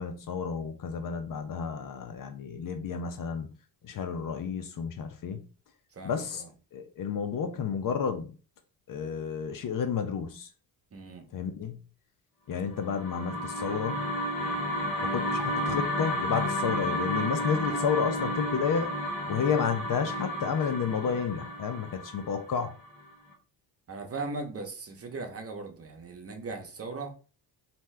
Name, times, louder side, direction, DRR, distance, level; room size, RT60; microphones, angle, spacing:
voice 1, 0.0-3.5 3.8-5.4 6.0-6.4 6.7-8.3 8.9-10.5 11.3-11.8 12.5-14.0 15.1-18.9 19.3-22.7, left 6 dB, 45° left, 0.6 m, -31 dB
voice 2, 5.9-6.5 10.9-11.3 14.3-14.6 23.9-27.1, right 3 dB, 30° right, 0.8 m, -39 dB
sound 1, 12.7-23.0, equal, 70° left, 1.2 m, -32 dB
2.8 x 2.2 x 3.2 m
supercardioid pair, 65°, 45 cm